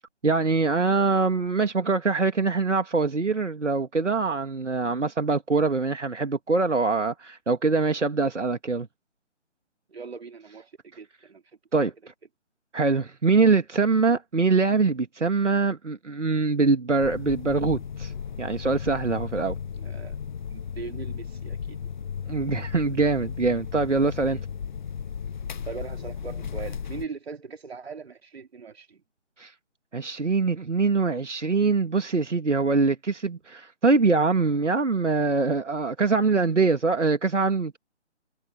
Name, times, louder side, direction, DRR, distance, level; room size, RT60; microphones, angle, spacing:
voice 1, 0.2-8.9 11.7-11.9 12.7-18.1 18.4-19.6 22.3-24.4 29.4-29.5 29.9-37.8, right 4 dB, 80° right, 2.2 m, -23 dB
voice 2, 9.9-11.4 19.8-20.2 20.5-21.8 24.3-24.4 25.7-29.0, right 5 dB, 60° right, 3.0 m, -40 dB
sound 1, 17.0-27.1, left 7 dB, 40° left, 1.1 m, -35 dB
figure-of-eight pair, 150°, 35 cm